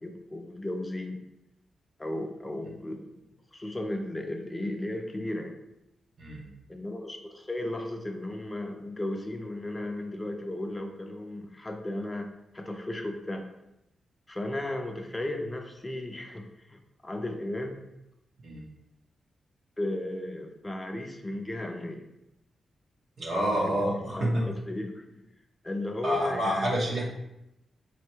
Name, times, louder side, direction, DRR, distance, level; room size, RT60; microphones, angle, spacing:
voice 1, 0.0-1.2 2.0-3.2 3.5-5.6 6.7-12.3 12.5-13.5 14.3-17.8 19.8-22.1 23.8-25.2 25.6-26.7, left 1 dB, 20° left, 4 dB, 0.6 m, -35 dB
voice 2, 23.2-24.5 26.0-27.0, equal, 65° right, -4 dB, 0.9 m, -28 dB
4.2 x 2.2 x 4.4 m, 0.87 s
cardioid pair, 75°, 0 cm